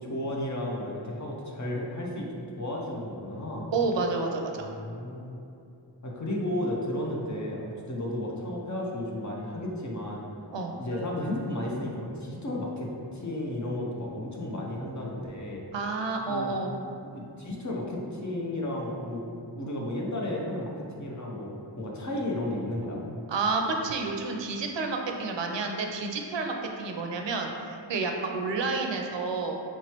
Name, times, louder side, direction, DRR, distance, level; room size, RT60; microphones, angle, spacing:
voice 1, 0.0-2.3 2.6-3.7 4.6-5.3 6.0-10.2 10.7-15.6 16.3-16.6 17.0-19.2 19.5-23.0, left 1 dB, 40° left, -2 dB, 0.6 m, -33 dB
voice 2, 3.7-4.5 10.5-10.8 15.7-16.8 23.3-29.6, right 3 dB, 75° right, 2 dB, 0.5 m, -30 dB
Bell, 10.9-12.5, left 3 dB, 65° left, 0.9 m, -45 dB
4.5 x 3.0 x 2.9 m, 2.6 s
wide cardioid pair, 80°, 45 cm